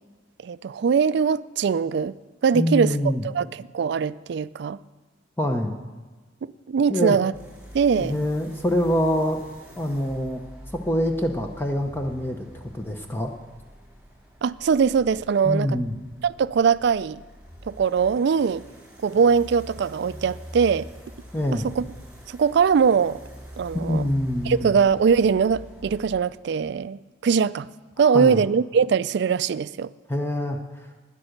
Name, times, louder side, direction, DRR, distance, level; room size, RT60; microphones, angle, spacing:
voice 1, 0.4-2.1 2.4-3.0 3.2-4.8 6.7-7.3 7.7-8.1 14.4-15.8 16.2-17.2 17.6-18.6 19.0-20.9 21.8-21.9 22.3-23.2 23.6-24.1 24.5-27.7 28.0-29.9, right 6 dB, 60° right, 17 dB, 0.3 m, -21 dB
voice 2, 2.5-3.2 5.4-5.8 6.9-7.2 7.9-9.4 9.8-10.4 10.7-13.3 15.4-15.9 21.3-21.7 23.8-24.7 28.1-28.4 30.1-30.9, left 1 dB, 10° left, 3 dB, 0.6 m, -25 dB
sound 1, 7.3-26.2, equal, 5° right, 3.6 m, -45 dB
12.5 x 9.9 x 6.5 m, 1.3 s
head